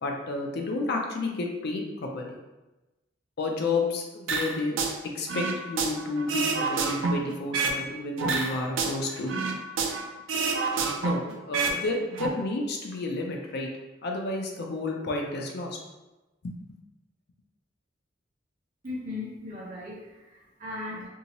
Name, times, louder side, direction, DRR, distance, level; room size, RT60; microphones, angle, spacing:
voice 1, 0.0-2.4 3.4-4.8 5.1-9.5 11.0-13.7 14.0-15.8 16.4-16.5, left 2 dB, 55° left, 1 dB, 0.5 m, -31 dB
sound 1, 4.3-4.9 5.3-7.8 8.2-10.0 10.3-11.8 12.0-12.3, right 4 dB, 85° right, 0.4 m, -28 dB
voice 2, 18.8-21.1, left 2 dB, 45° right, -5 dB, 0.9 m, -37 dB
2.7 x 2.7 x 2.9 m, 1.1 s
head